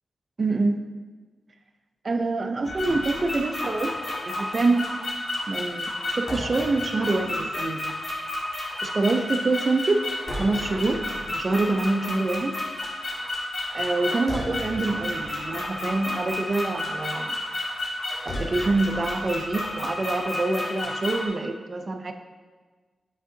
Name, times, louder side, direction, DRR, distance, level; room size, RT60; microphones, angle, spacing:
voice 1, 0.4-0.8 2.0-3.9 4.3-4.9 5.5-7.9 8.8-10.0 10.4-12.5 13.7-17.4 18.2-22.1, right 3 dB, 45° right, 6 dB, 0.5 m, -26 dB
sound 1, 2.6-21.3, left 1 dB, 50° left, 1.6 m, -31 dB
9.3 x 3.7 x 2.7 m, 1.4 s
cardioid pair, 60°, 0 cm